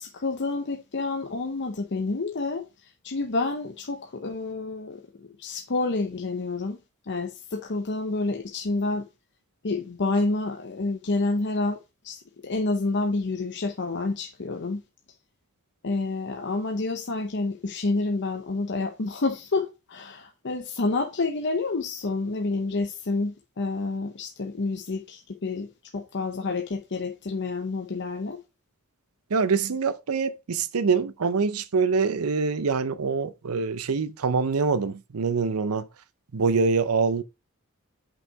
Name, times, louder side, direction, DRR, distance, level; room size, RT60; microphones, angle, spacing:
voice 1, 0.0-2.6 3.0-6.8 7.1-9.1 9.6-11.8 12.0-14.8 15.8-25.7 25.9-28.4, left 3 dB, 55° left, 0.8 m, -29 dB
voice 2, 29.3-35.9 36.3-37.2, right 5 dB, 90° right, 0.6 m, -25 dB
5.7 x 5.6 x 4.6 m
head